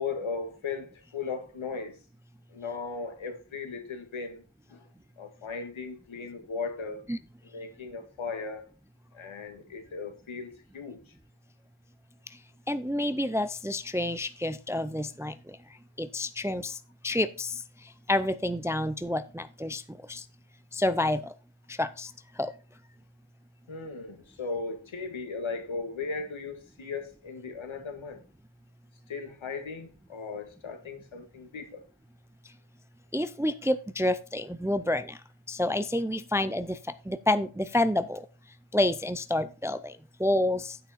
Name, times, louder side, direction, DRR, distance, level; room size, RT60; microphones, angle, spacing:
voice 1, 0.0-2.0 2.5-4.4 4.7-4.9 5.2-7.0 7.4-8.6 9.1-11.0 23.7-28.2 29.1-31.8, left 4 dB, 75° left, 2.0 m, -37 dB
voice 2, 12.7-15.6 16.0-20.3 20.7-21.3 21.7-22.5 33.1-35.2 35.5-38.3 38.7-40.8, left 1 dB, 5° right, 0.4 m, -29 dB
9.1 x 7.3 x 4.3 m
wide cardioid pair, 100°, 48 cm